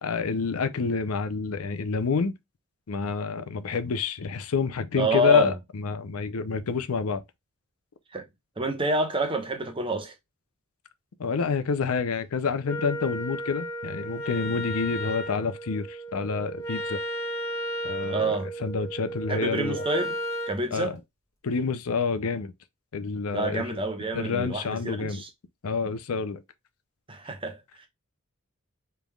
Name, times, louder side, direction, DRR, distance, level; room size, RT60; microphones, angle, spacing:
voice 1, 0.0-2.3 2.9-7.2 11.2-17.0 17.8-19.8 20.7-21.0 21.4-22.5 22.9-23.6 24.1-25.2 25.6-26.4, left 4 dB, 80° left, 0.6 m, -28 dB
voice 2, 5.0-5.5 8.1-8.2 8.6-10.1 18.1-18.5 19.3-20.2 20.5-21.0 23.3-25.3 27.1-27.6, right 1 dB, 25° right, 1.0 m, -28 dB
Wind instrument woodwind instrument, 12.6-20.6, right 1 dB, 15° left, 1.2 m, -34 dB
5.2 x 3.4 x 2.3 m
head